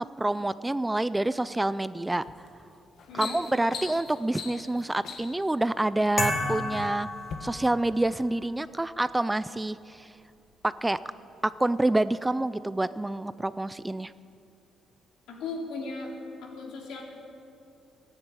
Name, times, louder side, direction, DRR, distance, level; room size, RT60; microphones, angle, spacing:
voice 1, 0.0-2.3 3.1-7.1 7.4-10.1 10.6-11.0 11.4-14.1, right 2 dB, 10° right, 15 dB, 0.4 m, -27 dB
sound 1, 2.2-2.5 2.9-5.5 6.3-6.8 7.2-7.4, left 6 dB, 65° left, 1.5 m, -40 dB
voice 2, 3.1-3.4 15.3-16.1 16.4-17.0, left 3 dB, 85° left, -1 dB, 3.3 m, -37 dB
sound 2, 6.2-8.1, left 1 dB, 20° left, 2.5 m, -31 dB
14.5 x 9.9 x 9.0 m, 2.5 s
cardioid pair, 115°, 0 cm